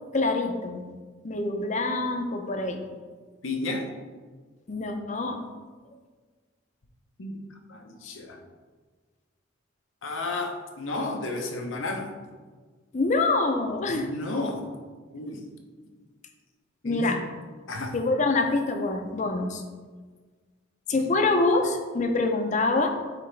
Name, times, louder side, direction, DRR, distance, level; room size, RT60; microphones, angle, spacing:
voice 1, 0.1-0.9 1.2-2.8 4.7-5.4 12.9-14.1 16.8-17.2 17.9-19.6 20.9-22.9, left 2 dB, 40° left, 5 dB, 0.6 m, -25 dB
voice 2, 3.4-3.9 7.2-7.4 7.7-8.4 10.0-12.1 13.9-14.7 15.1-15.4 16.8-17.2 17.7-17.9 20.9-21.0, left 2 dB, 80° left, 3 dB, 0.9 m, -32 dB
9.0 x 3.4 x 3.3 m, 1.4 s
head